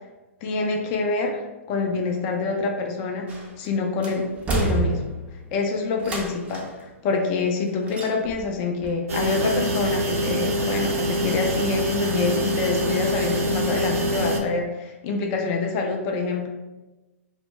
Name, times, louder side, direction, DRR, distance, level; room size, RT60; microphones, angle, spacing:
voice 1, 0.4-3.3 3.6-4.3 4.5-5.0 5.5-16.5, left 4 dB, 40° left, 2 dB, 0.4 m, -26 dB
sound 1, 3.3-3.7 4.0-5.4 6.0-6.8 7.9-8.5 8.8-8.9, right 3 dB, 20° right, 0.5 m, -28 dB
sound 2, 9.1-14.4, right 1 dB, 70° right, 0.6 m, -25 dB
2.1 x 2.1 x 3.3 m, 1.1 s
hypercardioid pair, 120°, 8 cm